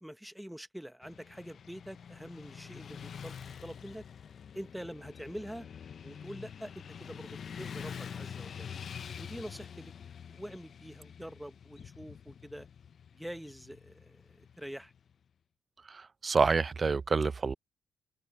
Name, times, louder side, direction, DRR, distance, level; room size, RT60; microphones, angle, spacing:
voice 1, 0.0-4.0 4.5-5.7 6.0-8.7 9.1-9.9 10.3-12.7 13.1-14.9, equal, 5° right, 1.1 m, -45 dB
Motorcycle / Traffic noise roadway noise, 1.0-15.1, left 7 dB, 50° left, 0.6 m, -46 dB
voice 2, 15.9-17.5, right 4 dB, 35° right, 0.6 m, -28 dB
open air
cardioid pair, 90°, 0 cm